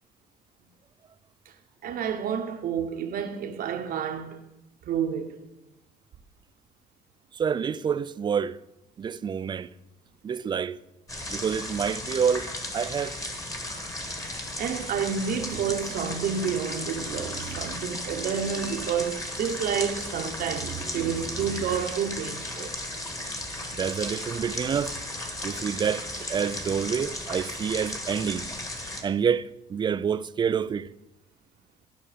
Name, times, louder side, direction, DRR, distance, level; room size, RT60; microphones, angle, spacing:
voice 1, 1.8-4.4 4.9-5.4 14.6-22.7 23.0-23.3, right 7 dB, 60° right, 1.0 m, -30 dB
voice 2, 7.3-8.6 9.0-9.7 10.2-10.8 11.3-13.2 23.7-24.9 25.4-28.5 29.0-30.9, right 7 dB, 25° right, 0.4 m, -28 dB
sound 1, 11.1-29.0, left 1 dB, 20° left, 1.7 m, -35 dB
12.5 x 5.8 x 5.1 m
cardioid pair, 110°, 17 cm